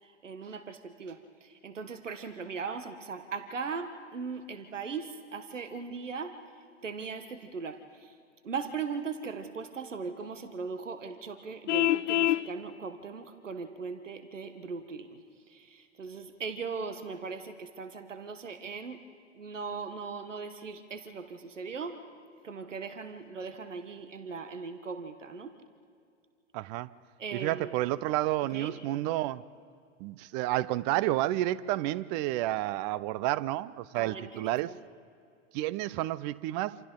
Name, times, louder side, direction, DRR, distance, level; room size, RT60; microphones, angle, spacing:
voice 1, 0.0-6.4 6.8-8.2 8.4-19.0 19.3-22.0 22.4-25.5 27.2-27.7 28.5-28.8 33.9-34.8, right 5 dB, 85° right, 9 dB, 1.3 m, -39 dB
Vehicle horn car horn honking, 11.7-12.5, left 13 dB, 70° left, 0.6 m, -25 dB
voice 2, 26.5-26.9 27.3-29.4 30.0-34.7 35.5-36.8, right 15 dB, 35° right, 19 dB, 0.6 m, -30 dB
27.5 x 27.0 x 3.8 m, 2.4 s
figure-of-eight pair, 100°, 36 cm